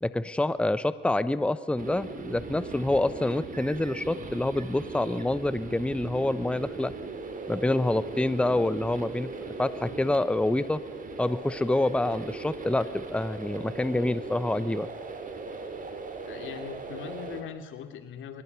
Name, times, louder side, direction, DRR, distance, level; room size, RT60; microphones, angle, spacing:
voice 1, 0.0-6.9 7.5-9.3 9.6-10.8 11.2-14.9, left 1 dB, 5° left, 14 dB, 0.8 m, -27 dB
sound 1, 1.8-17.4, right 3 dB, 45° right, 3.7 m, -39 dB
voice 2, 16.3-18.4, left 8 dB, 80° left, 8 dB, 2.7 m, -40 dB
23.0 x 20.5 x 8.2 m, 1.1 s
cardioid pair, 90°, 20 cm